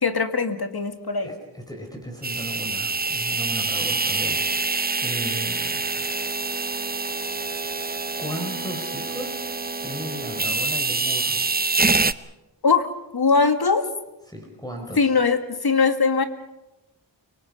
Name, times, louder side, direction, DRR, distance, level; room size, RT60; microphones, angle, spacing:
voice 1, 0.0-1.3 12.6-13.9 15.0-16.2, left 4 dB, 60° left, 8 dB, 2.0 m, -21 dB
voice 2, 1.2-4.4 5.0-5.8 6.9-7.0 8.2-9.5 9.8-11.5 14.3-15.1, equal, 10° left, 1 dB, 4.2 m, -35 dB
sound 1, 2.2-12.1, right 3 dB, 20° right, 0.7 m, -26 dB
29.5 x 19.0 x 5.4 m, 0.95 s
cardioid pair, 45°, 43 cm